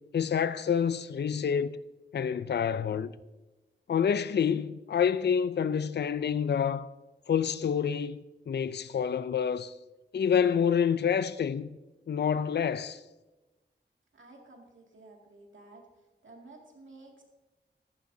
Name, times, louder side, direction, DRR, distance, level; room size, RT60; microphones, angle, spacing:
voice 1, 0.1-1.8 2.1-3.1 3.9-6.9 7.3-9.7 10.1-11.8 12.1-13.0, left 7 dB, 65° left, 0.4 m, -28 dB
voice 2, 14.1-15.9 16.2-17.2, right 2 dB, 90° right, 2.2 m, -52 dB
14.0 x 11.0 x 2.7 m
wide cardioid pair, 55°, 19 cm